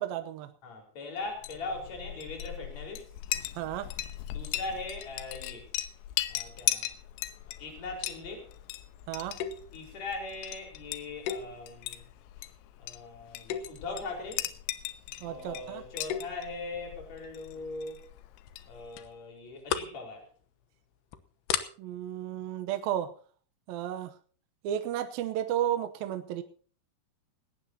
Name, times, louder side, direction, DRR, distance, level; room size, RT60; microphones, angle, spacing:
voice 1, 0.0-0.5 3.5-3.9 9.1-9.4 15.2-15.8 21.8-23.1 23.7-24.1 24.6-26.4, right 11 dB, 75° right, 9 dB, 2.3 m, -33 dB
voice 2, 0.6-3.1 4.3-5.7 6.3-6.9 7.6-8.5 9.7-12.0 12.8-14.5 15.2-18.0 18.7-20.3, left 3 dB, 40° left, 2 dB, 5.6 m, -40 dB
Chink clink, 1.3-19.1, left 14 dB, 90° left, 3.3 m, -39 dB
sound 1, 9.4-9.8 11.3-12.0 12.5-12.8 13.4-13.9 15.9-16.5 17.9-18.2 18.5-18.6 19.0-19.1 19.5-20.0 20.4-20.6 21.1-21.2 21.5-21.7, left 9 dB, 75° left, 3.0 m, -34 dB
18.5 x 18.0 x 2.8 m, 0.42 s
omnidirectional pair, 5.2 m